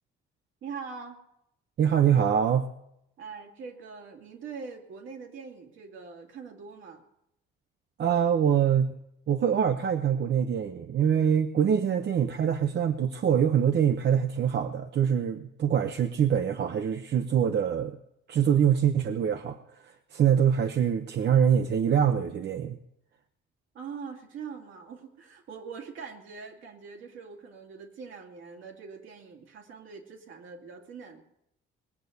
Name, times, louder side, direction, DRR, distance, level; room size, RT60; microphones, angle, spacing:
voice 1, 0.6-1.2 3.2-7.0 11.8-11.9 23.7-31.2, right 5 dB, 80° right, 2 dB, 2.6 m, -43 dB
voice 2, 1.8-2.7 8.0-8.9 9.3-18.0 18.3-22.8, right 8 dB, 60° right, 7 dB, 0.8 m, -24 dB
20.5 x 6.9 x 8.0 m, 0.81 s
cardioid pair, 90°, 20 cm